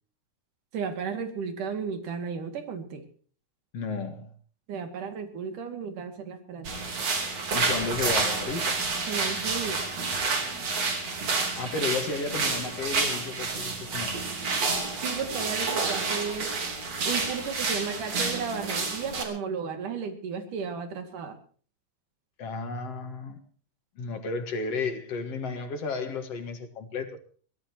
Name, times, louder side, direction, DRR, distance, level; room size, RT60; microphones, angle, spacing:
voice 1, 0.7-3.0 4.7-6.7 9.1-9.9 14.9-16.5 17.0-21.4, right 6 dB, 85° right, 3.9 m, -34 dB
voice 2, 3.7-4.3 7.5-8.9 11.6-14.2 22.4-23.4 24.0-27.2, left 4 dB, 55° left, 2.7 m, -33 dB
sound 1, 6.6-19.2, right 4 dB, 55° right, 4.3 m, -29 dB
23.0 x 17.0 x 3.0 m
omnidirectional pair, 3.5 m